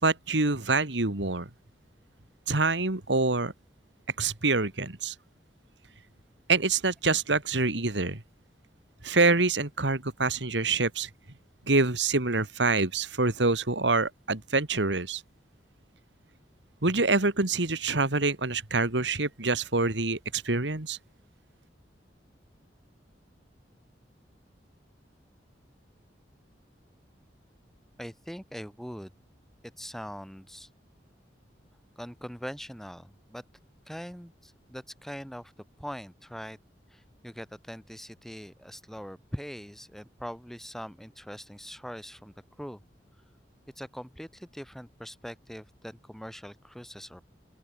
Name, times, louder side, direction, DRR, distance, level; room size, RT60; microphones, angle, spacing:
voice 1, 0.0-1.5 2.5-3.5 4.2-5.1 6.5-8.2 9.0-11.1 11.7-15.2 16.8-21.0, right 3 dB, 75° right, 2.3 m, -26 dB
voice 2, 28.0-29.1 29.6-30.7 32.0-33.4 33.9-35.5 35.8-36.6 36.9-42.8 43.8-47.3, equal, ahead, 7.8 m, -42 dB
open air
head